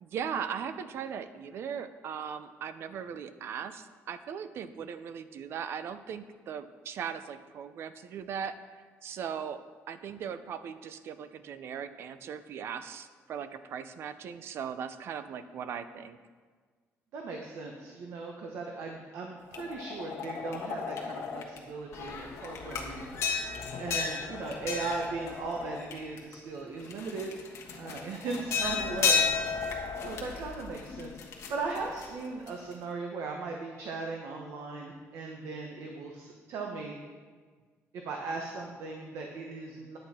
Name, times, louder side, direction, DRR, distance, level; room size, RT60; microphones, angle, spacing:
voice 1, 0.0-9.6 9.9-16.2, right 7 dB, 55° right, 11 dB, 0.5 m, -39 dB
voice 2, 17.1-23.1 23.8-27.5 27.8-29.4 29.7-31.1 31.5-37.0 37.9-40.0, right 3 dB, 70° right, 1 dB, 1.0 m, -38 dB
sound 1, 19.5-21.6 21.9-26.3 26.8-32.7, left 6 dB, 65° left, 1.5 m, -33 dB
10.5 x 8.0 x 4.3 m, 1.5 s
cardioid pair, 170°, 5 cm